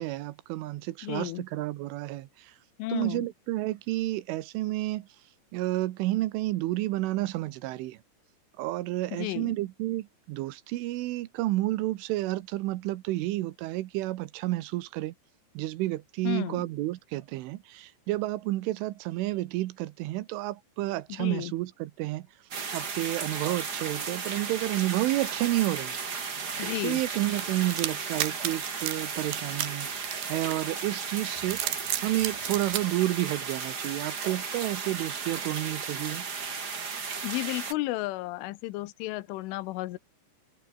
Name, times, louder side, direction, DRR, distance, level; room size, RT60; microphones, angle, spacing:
voice 1, 0.0-2.5 2.9-5.1 5.5-8.0 8.6-15.1 15.5-22.3 22.7-26.0 26.8-29.9 30.3-31.6 32.0-36.3, right 17 dB, 80° right, 3.5 m, -30 dB
voice 2, 1.0-1.4 2.8-3.3 9.1-9.6 16.2-16.7 21.1-21.5 26.6-27.0 37.2-40.0, left 18 dB, 85° left, 3.4 m, -33 dB
sound 1, 22.5-37.7, right 5 dB, 45° right, 1.3 m, -35 dB
sound 2, 27.4-30.8 31.4-32.8, right 14 dB, 65° right, 3.0 m, -33 dB
omnidirectional pair, 5.6 m